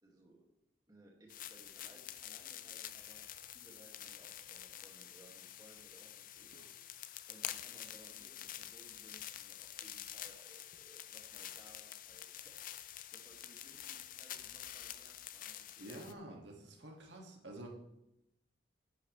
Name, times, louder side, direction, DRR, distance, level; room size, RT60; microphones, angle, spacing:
voice 1, 0.0-0.4 0.9-3.3 3.5-6.5 7.3-12.5 12.8-16.1, right 1 dB, 20° right, -1 dB, 2.1 m, -62 dB
sound 1, 1.3-16.1, left 11 dB, 50° left, 0.5 m, -48 dB
voice 2, 15.8-17.7, right 1 dB, 85° right, 0 dB, 2.1 m, -49 dB
11.5 x 10.0 x 3.3 m, 0.85 s
head